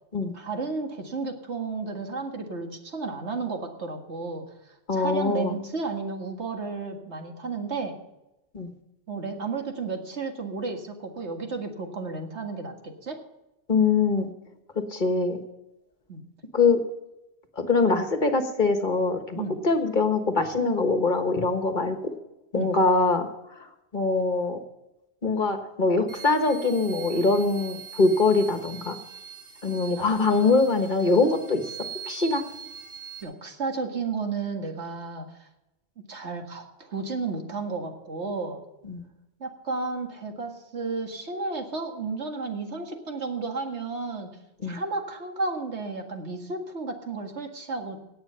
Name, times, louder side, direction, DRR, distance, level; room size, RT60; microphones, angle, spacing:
voice 1, 0.3-4.4 4.9-8.0 9.1-13.2 16.1-16.2 19.4-19.6 22.6-22.7 29.9-30.5 33.2-35.5 36.1-38.6 39.4-44.3 44.6-48.0, right 4 dB, 85° right, 3 dB, 2.2 m, -33 dB
voice 2, 4.9-5.6 8.5-8.7 13.7-14.3 14.9-15.4 16.5-16.8 17.6-22.1 22.5-23.3 23.9-24.6 25.2-28.9 29.6-31.6 32.1-32.4 38.8-39.0 44.6-44.8, left 3 dB, 45° left, 6 dB, 1.5 m, -23 dB
sound 1, 26.1-33.2, right 8 dB, 60° right, 3.0 m, -42 dB
18.0 x 8.2 x 5.7 m, 0.93 s
omnidirectional pair, 1.1 m